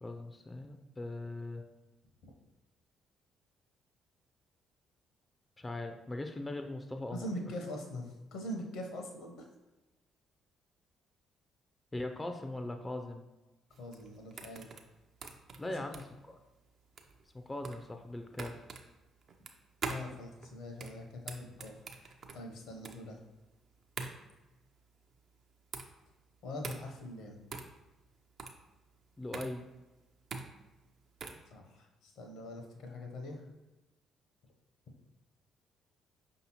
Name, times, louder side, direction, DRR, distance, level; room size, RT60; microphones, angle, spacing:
voice 1, 0.0-1.6 5.6-7.3 11.9-13.2 15.6-16.4 17.3-18.6 29.2-29.7, left 2 dB, 20° left, 5 dB, 0.4 m, -40 dB
voice 2, 7.1-9.5 13.8-14.7 15.6-15.8 19.9-21.8 22.3-23.2 26.4-27.4 31.5-33.5, left 1 dB, 65° left, 3 dB, 0.6 m, -43 dB
sound 1, 13.7-31.5, right 4 dB, 50° right, 0.4 m, -45 dB
5.2 x 2.7 x 2.8 m, 1.1 s
figure-of-eight pair, 45°, 0 cm